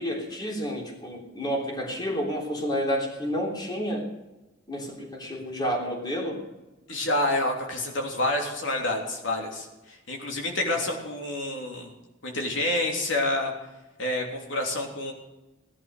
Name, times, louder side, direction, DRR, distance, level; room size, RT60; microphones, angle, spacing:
voice 1, 0.0-4.1 4.7-6.4 10.7-10.8, equal, 20° left, 0 dB, 3.3 m, -30 dB
voice 2, 6.9-11.9 12.2-13.5 14.0-15.1, left 1 dB, 80° left, 1 dB, 3.2 m, -28 dB
18.0 x 11.0 x 6.6 m, 1.0 s
head